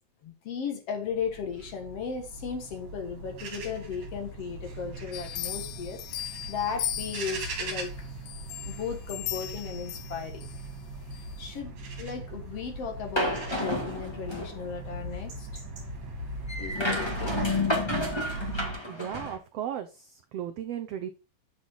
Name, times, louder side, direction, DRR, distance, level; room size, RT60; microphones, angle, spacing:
voice 1, 0.2-7.9 8.6-10.5 11.4-15.6 16.6-17.4 17.8-18.1, left 6 dB, 55° left, 2.2 m, -36 dB
sound 1, 1.1-18.7, right 2 dB, 55° right, 3.2 m, -39 dB
sound 2, 5.1-7.7 8.3-10.6 11.1-11.2, left 12 dB, 80° left, 2.3 m, -37 dB
sound 3, 13.2-14.6 16.5-19.4, left 1 dB, 15° left, 1.1 m, -30 dB
voice 2, 18.9-21.1, right 10 dB, 85° right, 1.4 m, -36 dB
7.7 x 7.3 x 4.0 m
omnidirectional pair, 3.7 m